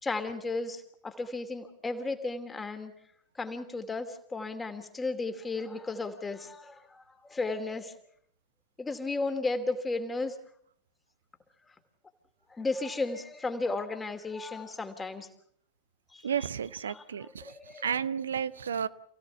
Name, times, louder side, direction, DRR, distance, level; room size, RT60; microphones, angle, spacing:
voice 1, 0.0-2.9 3.4-7.9 8.8-10.4 12.5-15.3 16.1-16.3 16.9-17.9, left 3 dB, 15° left, 7 dB, 2.6 m, -34 dB
voice 2, 16.2-17.5 17.8-18.9, right 8 dB, 65° right, 16 dB, 0.8 m, -32 dB
28.5 x 16.5 x 7.0 m, 0.67 s
figure-of-eight pair, 90°, 0 cm